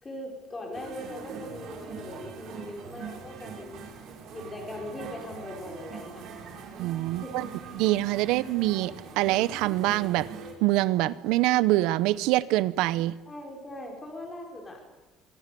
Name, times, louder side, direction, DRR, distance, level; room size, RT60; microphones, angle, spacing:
voice 1, 0.0-3.8 4.3-6.3 7.1-7.4 13.3-14.8, left 1 dB, 15° left, 1 dB, 5.7 m, -40 dB
sound 1, 0.7-10.5, right 6 dB, 55° right, 5.4 m, -42 dB
voice 2, 6.8-7.4 7.7-10.3 10.6-13.1, right 17 dB, 80° right, 17 dB, 0.9 m, -25 dB
24.5 x 23.5 x 7.0 m, 1.2 s
cardioid pair, 160°, 0 cm